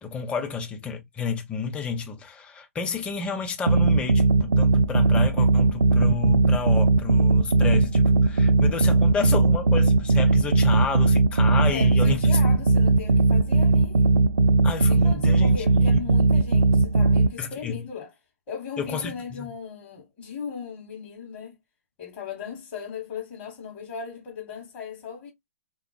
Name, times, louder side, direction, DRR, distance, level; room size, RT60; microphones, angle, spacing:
voice 1, 0.0-12.3 14.6-16.1 17.4-17.8 18.8-19.5, left 5 dB, 15° left, 0.6 m, -31 dB
sound 1, 3.7-17.3, right 3 dB, 75° right, 0.4 m, -19 dB
voice 2, 11.7-14.0 14.9-18.1 18.5-21.6 22.0-25.3, left 6 dB, 40° left, 1.0 m, -37 dB
3.5 x 2.3 x 2.3 m
figure-of-eight pair, 115°, 8 cm